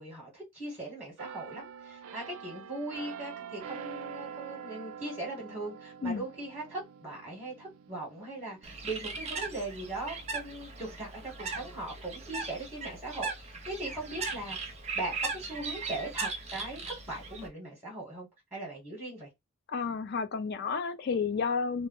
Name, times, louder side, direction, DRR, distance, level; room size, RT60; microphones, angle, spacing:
voice 1, 0.0-14.6 14.9-19.3, right 2 dB, 5° right, 0.9 m, -39 dB
sound 1, 1.2-12.7 13.2-13.4, right 7 dB, 85° right, 0.4 m, -47 dB
Bird, 8.6-17.5, right 4 dB, 30° right, 0.5 m, -38 dB
voice 2, 19.7-21.9, left 5 dB, 50° left, 0.4 m, -31 dB
2.1 x 2.0 x 3.5 m
head